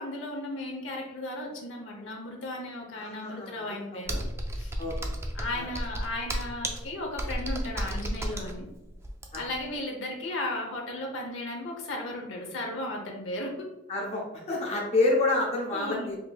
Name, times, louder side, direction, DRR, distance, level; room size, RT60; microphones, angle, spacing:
voice 1, 0.0-4.2 4.5-4.7 5.3-8.7 9.3-13.7 15.7-16.1, left 1 dB, 65° left, 1 dB, 0.8 m, -35 dB
voice 2, 3.0-4.0 4.8-5.0 5.5-5.7 9.3-9.4 13.9-16.2, left 2 dB, 30° left, -3 dB, 0.7 m, -28 dB
Computer keyboard, 4.1-9.7, right 1 dB, 15° right, 0.3 m, -33 dB
5.0 x 2.8 x 2.3 m, 0.98 s
head